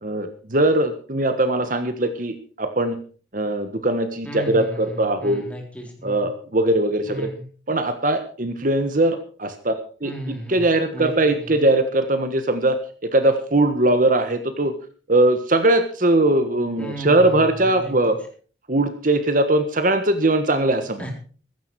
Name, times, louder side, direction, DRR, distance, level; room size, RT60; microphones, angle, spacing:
voice 1, 0.0-3.0 3.3-5.5 6.0-7.3 7.7-9.7 10.0-14.7 15.1-18.2 18.7-21.1, right 2 dB, 45° right, 9 dB, 1.5 m, -20 dB
voice 2, 4.2-6.3 7.1-7.3 10.0-10.6 10.9-11.1 16.8-17.9 21.0-21.1, equal, 5° left, 1 dB, 4.0 m, -34 dB
15.5 x 14.0 x 4.7 m, 0.40 s
head